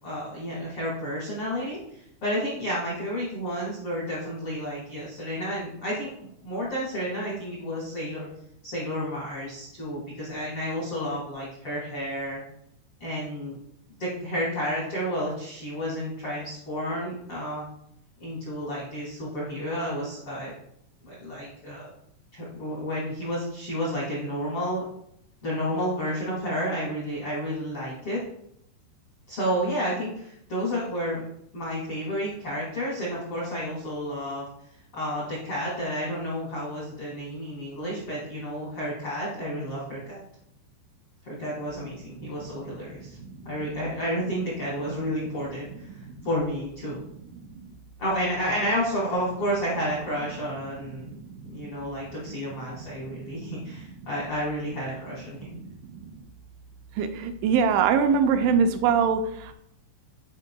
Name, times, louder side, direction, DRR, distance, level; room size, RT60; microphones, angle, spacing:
voice 1, 0.0-6.1 6.4-8.3 8.6-12.4 13.0-13.6 14.0-17.6 18.2-20.5 21.0-21.9 22.3-24.8 25.4-28.2 29.3-31.2 31.5-34.4 34.9-40.2 41.2-43.2 43.4-47.0 48.0-51.1 51.5-55.4, equal, 70° left, -6 dB, 1.3 m, -31 dB
voice 2, 51.0-51.7 53.1-53.5 55.7-56.0 57.0-59.5, right 6 dB, 85° right, 6 dB, 2.9 m, -24 dB
10.5 x 4.8 x 2.2 m, 0.73 s
omnidirectional pair, 5.3 m